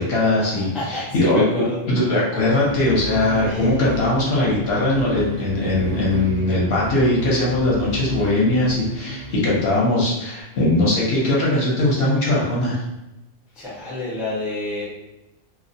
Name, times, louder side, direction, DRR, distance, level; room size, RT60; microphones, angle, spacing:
voice 1, 0.0-12.8, left 2 dB, 60° left, -5 dB, 0.9 m, -20 dB
voice 2, 0.5-1.8 3.4-3.9 13.6-14.9, left 2 dB, ahead, -7 dB, 0.4 m, -29 dB
sound 1, 2.6-10.0, right 2 dB, 60° right, 0.6 m, -33 dB
2.3 x 2.1 x 2.6 m, 0.94 s
omnidirectional pair, 1.3 m